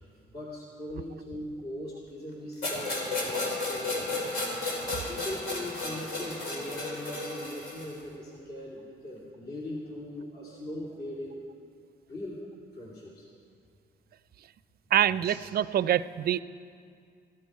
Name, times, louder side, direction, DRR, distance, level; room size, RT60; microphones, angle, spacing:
voice 1, 0.3-4.5 5.1-11.4 12.1-12.4 12.7-13.3 15.2-15.4, left 1 dB, 50° left, -5 dB, 2.5 m, -40 dB
sound 1, 2.6-8.0, left 2 dB, 75° left, 3.3 m, -33 dB
voice 2, 14.9-16.4, right 10 dB, 50° right, 16 dB, 0.4 m, -25 dB
15.0 x 11.5 x 4.8 m, 2.3 s
cardioid pair, 90°, 20 cm